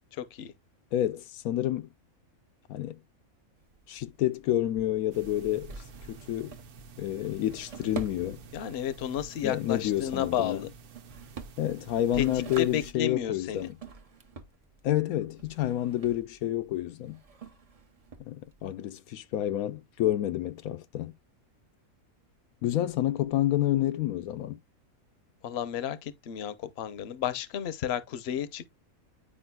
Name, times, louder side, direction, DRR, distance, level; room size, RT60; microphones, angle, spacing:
voice 1, 0.2-0.5 8.5-10.7 12.2-12.3 12.6-13.6 25.4-28.7, left 10 dB, 55° left, 0.8 m, -32 dB
voice 2, 0.9-1.9 2.7-3.0 3.9-5.8 6.1-6.6 7.0-8.4 9.4-10.7 11.6-13.8 14.8-17.2 18.2-21.1 22.6-24.6, left 13 dB, 80° left, 1.1 m, -29 dB
Drawer open or close, 3.6-18.7, right 4 dB, 35° right, 0.6 m, -48 dB
sound 1, 5.1-12.9, right 4 dB, 85° right, 1.3 m, -49 dB
9.8 x 5.0 x 2.3 m
omnidirectional pair, 1.5 m